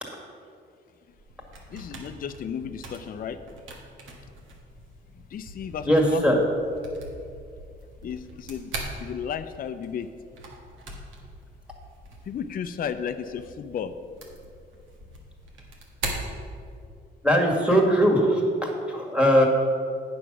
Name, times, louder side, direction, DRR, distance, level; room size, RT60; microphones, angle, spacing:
sound 1, 1.1-17.1, right 2 dB, 75° right, 1.7 m, -41 dB
voice 1, 1.7-3.4 5.3-6.5 8.0-8.7 9.0-10.1 12.2-13.9, left 7 dB, 45° left, 9 dB, 0.5 m, -33 dB
voice 2, 5.9-6.4 17.2-19.5, equal, 5° right, 0 dB, 1.9 m, -20 dB
8.9 x 6.1 x 6.0 m, 2.4 s
cardioid pair, 90°, 20 cm